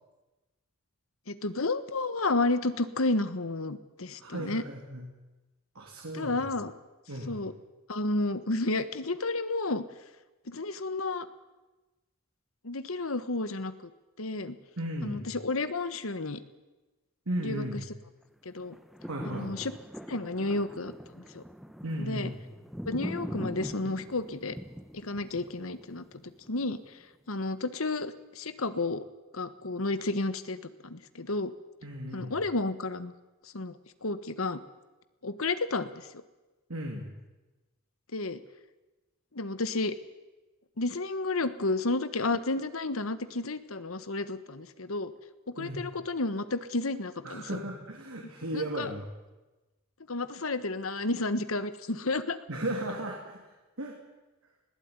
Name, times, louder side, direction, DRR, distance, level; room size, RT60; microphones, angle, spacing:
voice 1, 1.3-4.6 6.1-6.7 7.3-7.5 7.9-9.8 10.5-11.3 12.6-13.9 14.2-14.6 15.0-16.4 17.4-17.6 18.4-18.8 19.3-19.7 20.1-21.4 22.0-22.3 22.9-24.5 24.9-26.0 26.5-27.0 27.3-29.0 29.3-31.5 32.1-33.1 33.4-34.6 35.2-36.1 38.1-38.4 39.3-39.9 40.8-45.1 45.6-47.6 48.5-48.9 50.1-52.4, left 2 dB, 75° left, 12 dB, 1.4 m, -31 dB
voice 2, 4.2-5.0 5.7-6.4 7.1-7.4 14.8-15.2 17.2-17.8 19.1-19.5 21.8-22.4 31.8-32.4 36.7-37.2 45.6-45.9 47.2-49.1 52.5-53.4 53.8-54.0, right 1 dB, 90° right, 0 dB, 3.3 m, -35 dB
sound 1, 18.6-26.9 27.4-27.5, equal, ahead, 1.0 m, -42 dB
20.0 x 17.0 x 9.7 m, 1.1 s
head